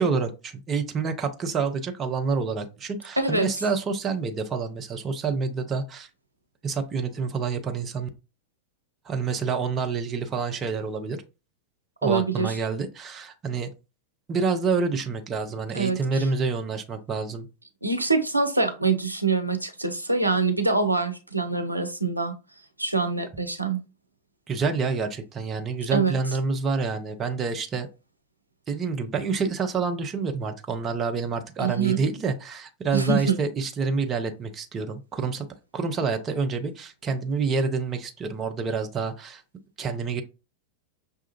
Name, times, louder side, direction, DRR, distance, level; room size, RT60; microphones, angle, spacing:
voice 1, 0.0-6.1 6.6-8.1 9.0-11.2 12.0-13.7 14.3-17.5 24.5-27.9 28.7-35.5 35.7-39.4 39.8-40.2, right 5 dB, 25° right, 5 dB, 0.7 m, -28 dB
voice 2, 3.2-3.5 12.0-12.5 15.7-16.3 17.8-22.3 22.8-23.8 25.9-26.2 31.6-32.0 32.9-33.4, right 4 dB, 85° right, 5 dB, 0.5 m, -24 dB
6.0 x 2.3 x 2.9 m, 0.30 s
figure-of-eight pair, 90°, 0 cm